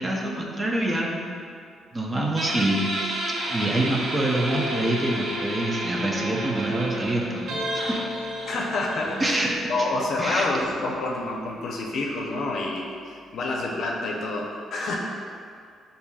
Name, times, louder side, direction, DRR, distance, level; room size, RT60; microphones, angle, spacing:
voice 1, 0.0-1.4 1.9-8.0 9.2-9.5 10.2-10.5, right 1 dB, 25° right, -1 dB, 0.7 m, -26 dB
Guitar, 2.4-9.6, right 1 dB, 80° right, 0.7 m, -31 dB
sound 1, 4.5-12.2, left 1 dB, 20° left, 1.0 m, -37 dB
voice 2, 8.5-9.4 9.7-15.0, left 2 dB, 65° left, -1 dB, 0.6 m, -28 dB
7.0 x 2.7 x 2.3 m, 2.3 s
cardioid pair, 90°, 0 cm